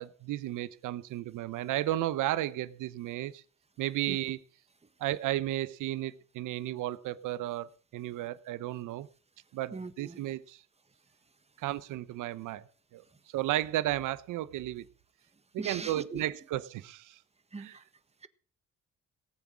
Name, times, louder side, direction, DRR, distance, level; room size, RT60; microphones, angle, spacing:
voice 1, 0.0-3.4 3.8-4.4 5.0-9.1 9.5-10.6 11.6-12.6 12.9-13.0 13.3-14.8 15.5-17.2 17.6-17.8, right 14 dB, 85° right, 0.9 m, -33 dB
voice 2, 9.7-10.2 15.6-16.2 17.5-17.8, right 3 dB, 20° right, 1.5 m, -40 dB
18.5 x 8.1 x 6.2 m
cardioid pair, 90°, 30 cm